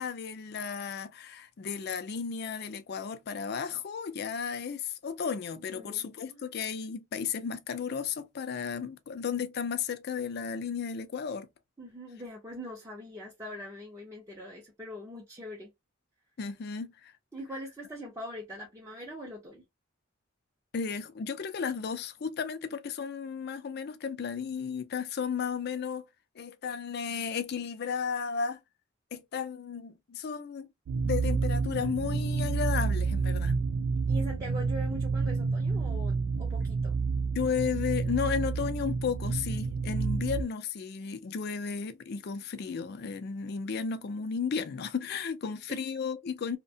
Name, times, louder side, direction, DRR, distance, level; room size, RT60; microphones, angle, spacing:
voice 1, 0.0-11.5 16.4-17.1 20.7-26.0 26.4-28.6 29.1-30.7 31.0-33.6 37.4-46.6, left 6 dB, 55° left, 0.4 m, -34 dB
voice 2, 5.7-6.4 11.8-15.7 17.3-19.6 34.1-37.0 45.7-45.8, equal, 15° right, 0.5 m, -42 dB
sound 1, 30.9-40.4, right 4 dB, 80° right, 0.3 m, -29 dB
2.7 x 2.1 x 2.6 m
head